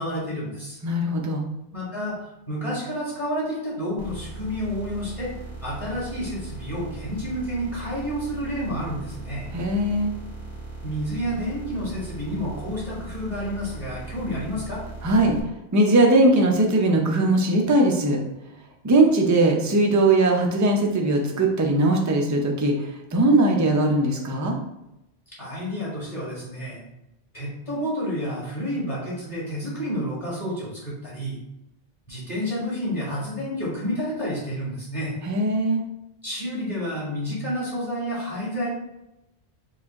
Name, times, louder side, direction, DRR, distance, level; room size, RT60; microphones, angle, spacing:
voice 1, 0.0-0.8 1.7-5.3 5.6-9.5 10.8-14.8 25.4-26.9 27.3-31.4 32.1-35.1 36.2-38.7, equal, 30° left, -8 dB, 1.7 m, -30 dB
voice 2, 0.8-1.5 9.5-10.1 15.0-15.4 15.7-18.2 18.8-24.6 35.2-35.8, right 2 dB, 25° right, 1 dB, 0.4 m, -20 dB
sound 1, 4.0-15.4, right 3 dB, 85° left, 2.0 m, -38 dB
4.9 x 2.4 x 3.6 m, 0.88 s
omnidirectional pair, 1.1 m